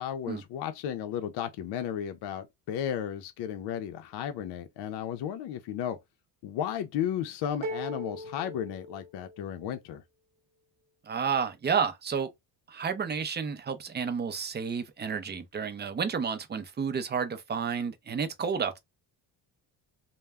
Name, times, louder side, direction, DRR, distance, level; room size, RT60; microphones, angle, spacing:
voice 1, 0.0-6.0 6.4-10.0, left 9 dB, 65° left, 0.5 m, -34 dB
sound 1, 7.6-9.6, equal, 50° right, 0.8 m, -39 dB
voice 2, 11.0-12.3 12.7-18.8, right 6 dB, 25° right, 0.5 m, -31 dB
2.1 x 2.1 x 3.4 m
cardioid pair, 110°, 44 cm